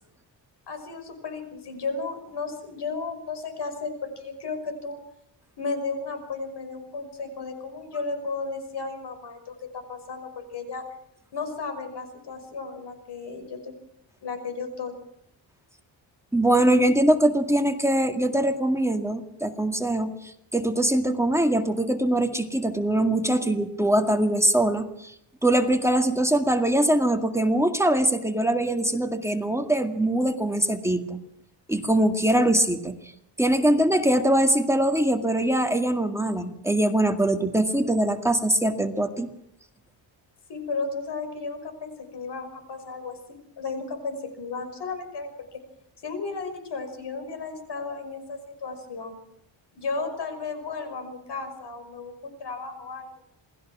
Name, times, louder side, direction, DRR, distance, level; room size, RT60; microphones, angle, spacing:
voice 1, 0.7-5.0 5.6-10.8 11.3-13.7 14.2-14.9 40.5-45.6 46.0-49.2 49.7-53.1, left 4 dB, 60° left, 8 dB, 5.7 m, -34 dB
voice 2, 16.3-20.1 20.5-25.1 25.4-31.2 31.7-32.9 33.4-39.3, right 1 dB, 5° right, 5 dB, 2.0 m, -22 dB
28.0 x 20.0 x 6.2 m, 0.74 s
wide cardioid pair, 140°, 45 cm